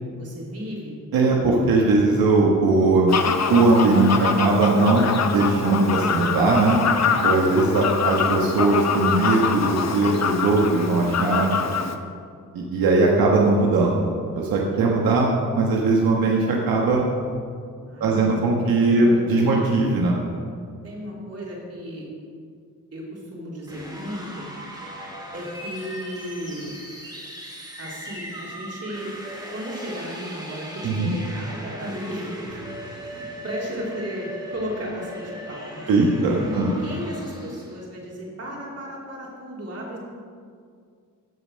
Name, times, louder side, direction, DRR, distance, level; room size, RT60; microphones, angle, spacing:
voice 1, 0.1-0.9 17.9-18.6 18.9-19.7 20.8-22.1 22.9-24.4 25.3-26.7 27.8-29.1 29.5-32.3 33.0-35.9 36.4-40.0, equal, 45° right, -4 dB, 3.7 m, -34 dB
voice 2, 1.1-3.1 3.5-6.8 7.2-11.5 12.5-14.1 14.3-17.0 18.0-20.2 30.8-31.1 35.9-36.7, right 3 dB, 90° right, -2 dB, 1.5 m, -19 dB
Fowl, 3.1-12.0, left 6 dB, 50° left, 1.0 m, -25 dB
sound 1, 23.6-37.8, equal, 10° right, 3.2 m, -38 dB
16.0 x 5.7 x 6.5 m, 2.2 s
cardioid pair, 95°, 34 cm